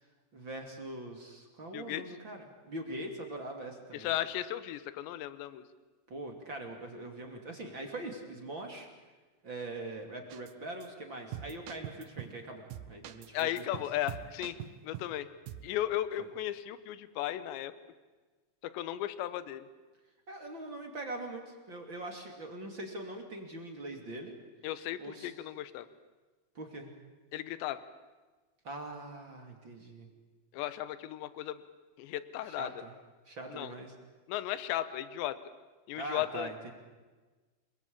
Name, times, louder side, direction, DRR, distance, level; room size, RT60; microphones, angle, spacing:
voice 1, 0.3-4.1 6.1-8.9 9.4-13.8 16.2-16.3 20.3-24.3 25.0-25.3 26.5-26.9 28.6-30.1 32.5-32.9 33.3-33.9 35.9-36.7, right 1 dB, 30° right, 3 dB, 2.8 m, -42 dB
voice 2, 1.7-2.0 3.9-5.7 13.3-15.3 15.6-17.7 18.6-19.7 24.6-25.9 27.3-27.8 30.5-31.6 32.0-32.7 33.5-33.7 34.3-35.4 35.9-36.7, left 13 dB, 85° left, 14 dB, 3.2 m, -36 dB
sound 1, 10.3-10.5 10.8-10.9 11.3-12.4 12.7-15.2 15.5-15.7, right 11 dB, 70° right, 2.0 m, -43 dB
28.0 x 21.5 x 8.7 m, 1.3 s
omnidirectional pair, 5.1 m